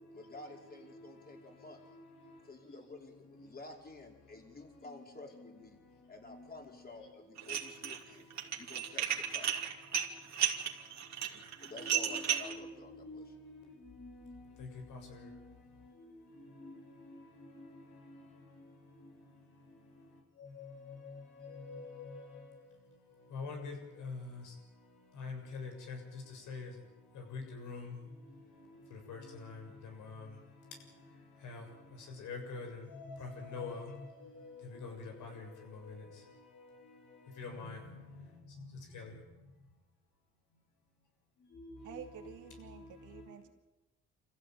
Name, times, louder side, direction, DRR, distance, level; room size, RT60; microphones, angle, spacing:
voice 1, 0.1-1.8 2.4-5.8 6.1-8.3 8.6-9.5 11.6-13.3, left 2 dB, 30° left, 5.2 m, -51 dB
Dishes pots and pans, 7.4-8.0 8.3-12.5, right 9 dB, 65° right, 2.8 m, -33 dB
voice 2, 11.8-12.6 13.0-13.2 13.9-14.3 14.6-15.3 16.5-16.7 17.5-17.6 20.6-20.7 21.4-22.2 23.3-23.7 24.0-24.2 25.2-26.0 26.5-26.7 27.3-27.9 29.1-29.6 30.0-30.3 31.4-31.6 32.2-33.8 34.8-35.4 35.8-35.9 37.4-37.8 38.9-39.1 41.5-42.2, left 4 dB, 80° left, 7.0 m, -44 dB
voice 3, 41.8-43.5, right 9 dB, 80° right, 2.8 m, -50 dB
25.5 x 15.5 x 9.2 m
cardioid pair, 90°, 30 cm